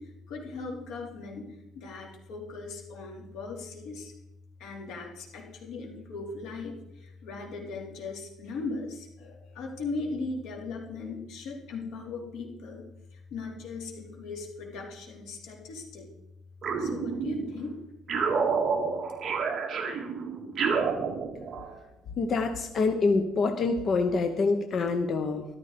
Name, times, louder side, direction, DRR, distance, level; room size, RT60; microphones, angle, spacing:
voice 1, 0.3-1.5 1.8-4.1 4.6-6.7 7.2-12.8 13.3-16.1 16.8-17.7, left 3 dB, 80° left, 1 dB, 3.8 m, -38 dB
sound 1, 16.6-17.6 18.1-21.7, right 5 dB, 35° right, 1.9 m, -29 dB
voice 2, 22.2-25.5, left 4 dB, 35° left, 7 dB, 0.9 m, -26 dB
14.0 x 12.5 x 5.1 m, 0.89 s
cardioid pair, 170°, 0 cm